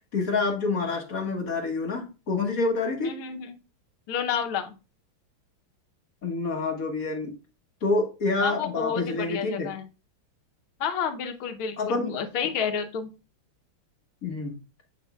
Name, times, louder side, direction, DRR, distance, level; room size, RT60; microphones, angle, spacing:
voice 1, 0.1-3.1 6.2-7.3 7.8-9.7 11.8-12.2 14.2-14.6, left 3 dB, 45° left, 2 dB, 1.4 m, -27 dB
voice 2, 3.0-3.6 4.1-4.7 8.4-9.9 10.8-13.1, left 7 dB, 70° left, 6 dB, 1.7 m, -30 dB
7.9 x 5.8 x 2.3 m, 0.30 s
omnidirectional pair, 2.4 m